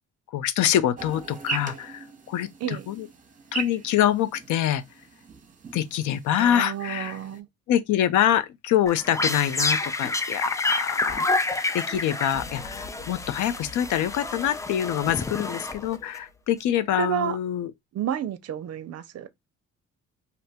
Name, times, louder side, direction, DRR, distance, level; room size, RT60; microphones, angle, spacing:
voice 1, 0.3-3.1 3.5-4.8 5.7-7.2 7.7-11.5 11.7-17.7, left 11 dB, 80° left, 0.5 m, -25 dB
sound 1, 1.0-7.4, right 5 dB, 25° right, 0.8 m, -39 dB
voice 2, 6.4-7.5 17.0-17.4 17.9-19.5, right 11 dB, 55° right, 0.5 m, -30 dB
sound 2, 8.9-16.2, left 2 dB, 10° left, 0.3 m, -28 dB
sound 3, 12.3-16.6, left 3 dB, 55° left, 1.0 m, -47 dB
2.7 x 2.2 x 4.0 m
cardioid pair, 90°, 30 cm